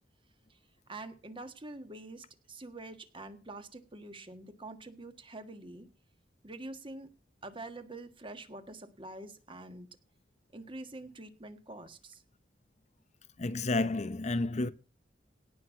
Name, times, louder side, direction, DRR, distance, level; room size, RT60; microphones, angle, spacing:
voice 1, 0.9-5.9 6.4-7.1 7.4-9.9 10.5-12.2, right 2 dB, 30° right, 1.6 m, -46 dB
voice 2, 13.4-14.7, left 2 dB, 40° left, 0.7 m, -30 dB
17.5 x 6.2 x 5.9 m
head